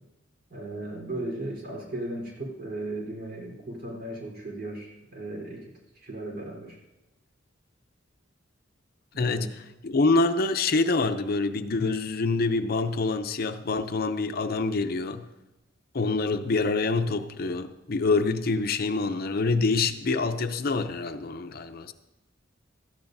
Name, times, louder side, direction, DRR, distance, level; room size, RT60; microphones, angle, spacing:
voice 1, 0.5-5.6 6.0-6.8 9.1-9.5, right 2 dB, 55° right, 3.8 m, -36 dB
voice 2, 9.2-15.3 15.9-21.9, left 3 dB, 55° left, 0.6 m, -26 dB
17.5 x 13.5 x 2.7 m
head